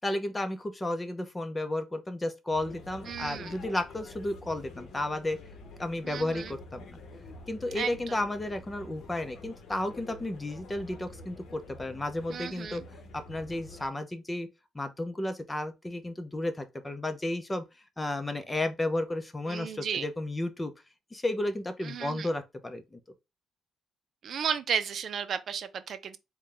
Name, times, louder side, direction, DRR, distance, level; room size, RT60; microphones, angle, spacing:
voice 1, 0.0-5.4 5.8-7.0 7.5-12.8 13.1-14.5 14.7-17.6 18.0-20.7 21.1-23.0, left 1 dB, 15° left, 0.7 m, -33 dB
sound 1, 2.5-13.9, left 2 dB, 70° left, 0.9 m, -48 dB
voice 2, 3.1-3.6 6.0-6.5 7.7-8.2 12.3-12.8 19.5-20.1 21.8-22.3 24.2-26.2, right 7 dB, 60° right, 0.5 m, -34 dB
3.9 x 2.3 x 3.4 m
cardioid pair, 90°, 0 cm